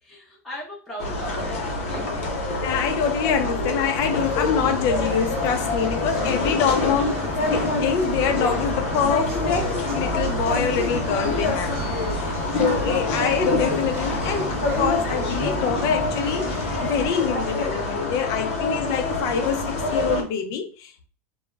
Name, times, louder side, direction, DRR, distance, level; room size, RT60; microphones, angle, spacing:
voice 1, 0.0-2.3 12.1-12.6 18.0-18.6, equal, 5° left, 0.7 m, -40 dB
sound 1, 1.0-20.2, left 2 dB, 85° left, 0.7 m, -26 dB
voice 2, 2.6-11.8 12.2-21.1, left 7 dB, 50° left, 0.5 m, -25 dB
sound 2, 4.0-17.1, right 3 dB, 35° right, 0.5 m, -34 dB
2.3 x 2.0 x 3.1 m
supercardioid pair, 135°, 8 cm